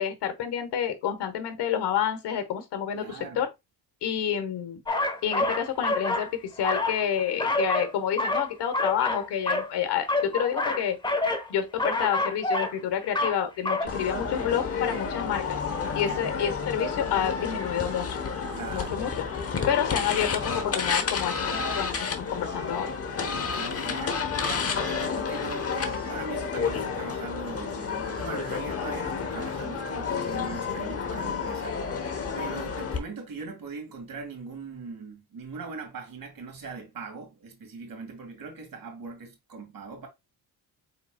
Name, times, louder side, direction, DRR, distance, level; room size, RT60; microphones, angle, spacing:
voice 1, 0.0-3.5 4.0-4.8 5.2-11.0 11.5-15.6 15.9-18.2 18.7-19.1 19.7-22.9, left 9 dB, 80° left, 1.3 m, -29 dB
voice 2, 2.9-3.4 16.0-16.2 18.5-19.0 23.3-31.8 32.3-40.1, right 4 dB, 55° right, 2.1 m, -40 dB
sound 1, 4.9-6.3 6.6-7.9 8.2-9.7 10.0-11.5 11.8-12.8 13.0-13.4 13.6-13.8, left 2 dB, 10° left, 0.8 m, -27 dB
sound 2, 13.9-33.0, left 5 dB, 35° left, 1.0 m, -30 dB
5.6 x 4.2 x 2.2 m
cardioid pair, 115°, 41 cm